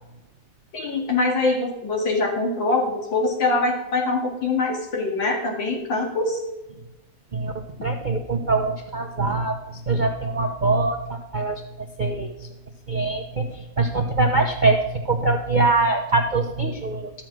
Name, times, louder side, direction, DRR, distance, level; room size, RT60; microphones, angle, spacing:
voice 1, 0.7-6.4, left 3 dB, 85° left, 2 dB, 2.8 m, -23 dB
voice 2, 7.3-11.6 12.0-12.3 12.9-17.1, right 3 dB, 50° right, 3 dB, 0.5 m, -23 dB
12.0 x 7.2 x 6.1 m, 1.0 s
omnidirectional pair, 2.0 m